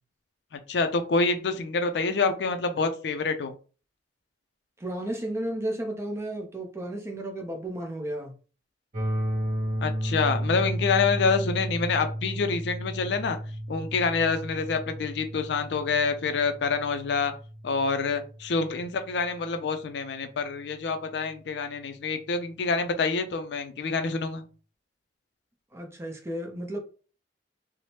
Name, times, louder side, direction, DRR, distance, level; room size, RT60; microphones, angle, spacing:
voice 1, 0.7-3.5 9.8-13.4 13.7-17.3 17.6-24.4, left 4 dB, 70° left, 0.4 m, -27 dB
voice 2, 4.8-8.3 25.7-26.8, right 1 dB, 15° right, 0.5 m, -33 dB
sound 1, 8.9-18.9, equal, 45° right, 0.9 m, -33 dB
3.1 x 2.0 x 2.8 m
head